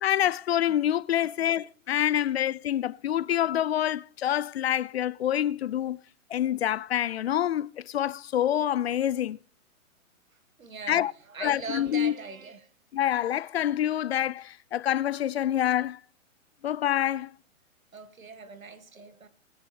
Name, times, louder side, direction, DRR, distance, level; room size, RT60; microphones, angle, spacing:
voice 1, 0.0-6.0 6.3-9.4 10.9-11.1 11.4-12.1 12.9-16.0 16.6-17.3, left 11 dB, 50° left, 0.6 m, -26 dB
voice 2, 10.6-12.7 17.9-19.3, right 5 dB, 80° right, 1.9 m, -41 dB
19.5 x 9.7 x 3.3 m
figure-of-eight pair, 125°, 40 cm